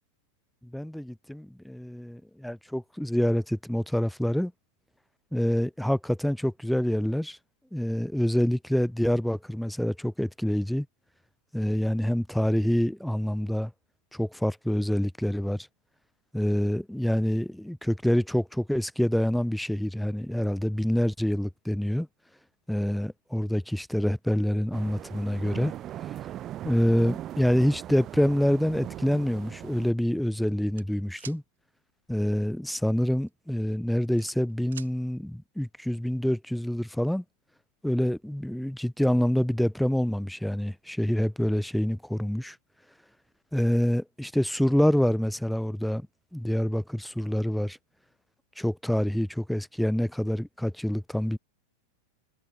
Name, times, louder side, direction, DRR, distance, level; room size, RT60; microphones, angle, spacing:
voice 1, 0.7-4.5 5.3-7.4 7.7-10.9 11.5-13.7 14.1-15.7 16.3-22.1 22.7-25.7 26.6-31.4 32.1-37.2 37.8-42.6 43.5-46.0 46.3-47.8 48.6-51.4, equal, ahead, 0.5 m, -26 dB
sound 1, 24.7-29.9, right 12 dB, 30° right, 0.9 m, -39 dB
sound 2, 30.8-31.4 33.1-33.3 33.7-34.9, right 9 dB, 65° right, 2.0 m, -45 dB
figure-of-eight pair, 90°, 0 cm